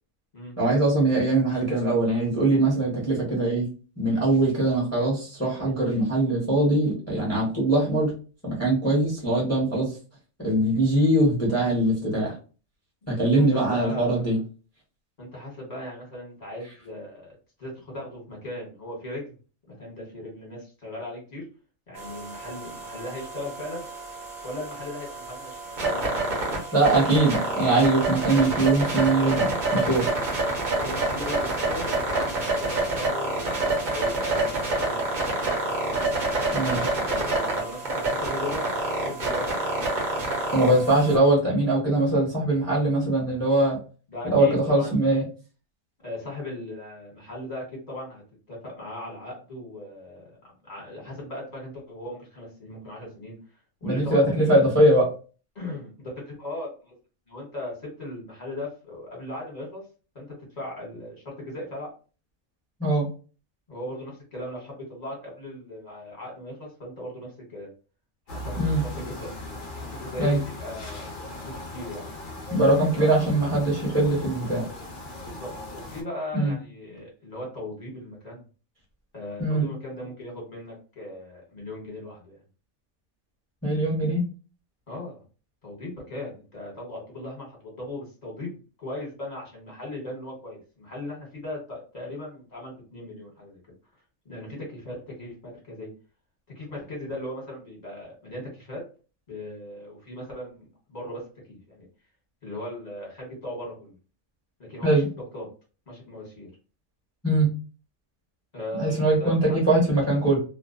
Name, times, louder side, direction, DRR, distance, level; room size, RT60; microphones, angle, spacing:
voice 1, 0.6-3.7 4.0-8.1 8.4-10.0 10.4-12.3 13.1-14.4 26.7-30.1 36.5-36.9 40.5-43.8 44.2-45.2 53.8-55.1 62.8-63.1 68.6-68.8 70.2-70.4 72.5-74.6 76.3-76.5 79.4-79.6 83.6-84.2 104.8-105.1 107.2-107.5 108.8-110.4, right 2 dB, 15° left, -4 dB, 0.8 m, -22 dB
voice 2, 13.1-14.3 15.2-19.3 19.7-21.4 21.9-23.9 24.4-27.0 30.7-35.7 37.1-39.8 44.1-45.2 46.0-48.2 48.5-53.4 53.8-54.6 55.5-56.9 57.3-59.8 60.1-60.3 60.5-61.9 63.7-67.7 68.3-69.3 69.9-72.1 73.0-73.3 75.2-78.4 79.1-82.4 84.9-85.2 85.6-93.6 94.2-95.9 96.5-98.8 99.3-101.2 101.5-101.9 102.4-103.9 104.7-105.0 105.3-105.5 105.9-106.5 108.5-109.6, left 1 dB, 35° left, -2 dB, 1.1 m, -38 dB
sound 1, 22.0-41.2, right 2 dB, 45° right, 0.8 m, -27 dB
sound 2, 68.3-76.0, left 1 dB, 55° left, 0.6 m, -38 dB
2.5 x 2.1 x 2.4 m, 0.36 s
omnidirectional pair, 1.4 m